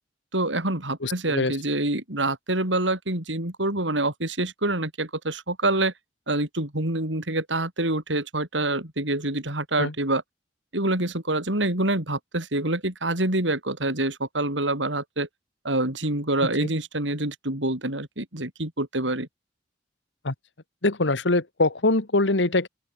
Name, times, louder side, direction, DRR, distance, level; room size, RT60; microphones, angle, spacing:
voice 1, 0.3-5.9 6.3-10.2 10.7-15.3 15.6-19.3, right 2 dB, 85° right, 6.0 m, -26 dB
voice 2, 1.0-1.5 9.8-9.9 16.6-16.7 20.2-20.3 20.8-22.7, left 2 dB, 75° left, 1.7 m, -23 dB
open air
head